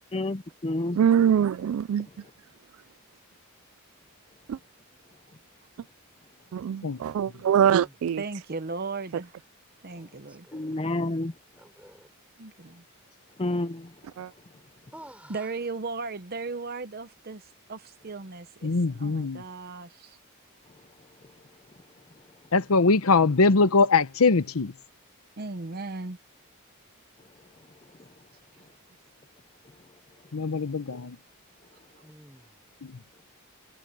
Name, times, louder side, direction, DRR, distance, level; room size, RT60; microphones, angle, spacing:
voice 1, 0.1-1.0 10.5-11.3 13.4-13.9, left 2 dB, 25° left, 0.6 m, -29 dB
voice 2, 0.9-2.1 4.5-4.6 6.5-8.2 14.2-14.3, right 8 dB, 70° right, 0.3 m, -23 dB
voice 3, 8.2-9.3 9.8-10.5 12.4-12.8 15.3-20.2 25.4-26.2, right 3 dB, 45° right, 0.8 m, -36 dB
voice 4, 10.2-10.8 11.6-12.1 14.9-15.5 32.0-32.6, right 1 dB, 5° right, 6.0 m, -50 dB
voice 5, 18.6-19.4 22.5-24.7 30.3-31.2 32.8-32.9, left 4 dB, 75° left, 0.8 m, -22 dB
head